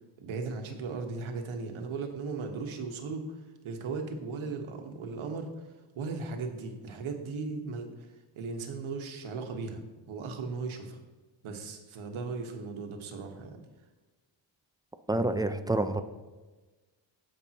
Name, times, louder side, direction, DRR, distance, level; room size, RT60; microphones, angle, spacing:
voice 1, 0.2-5.5 5.9-8.1 8.3-11.0 11.4-13.6, right 4 dB, 80° right, 4 dB, 1.3 m, -37 dB
voice 2, 15.1-16.0, right 2 dB, 10° right, 9 dB, 0.3 m, -28 dB
15.5 x 5.3 x 2.9 m, 1.2 s
cardioid pair, 110°, 48 cm